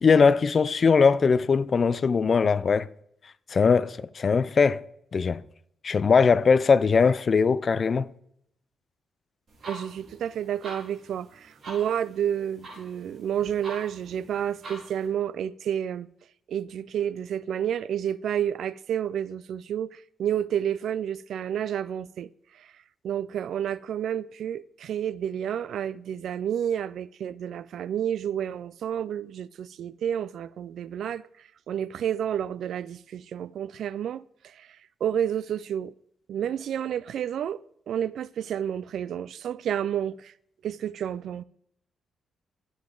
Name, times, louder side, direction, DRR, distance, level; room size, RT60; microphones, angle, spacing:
voice 1, 0.0-2.9 3.5-4.8 5.1-5.4 5.8-8.1, left 5 dB, 40° left, 0.4 m, -20 dB
sound 1, 9.5-15.1, right 2 dB, 45° right, 3.6 m, -45 dB
voice 2, 9.7-16.1 16.5-22.3 22.6-22.7 23.0-31.2 31.7-34.7 35.0-35.9 36.3-37.6 37.9-40.3 40.6-41.4, right 9 dB, 70° right, 0.3 m, -30 dB
12.5 x 7.1 x 3.8 m
cardioid pair, 135°, 0 cm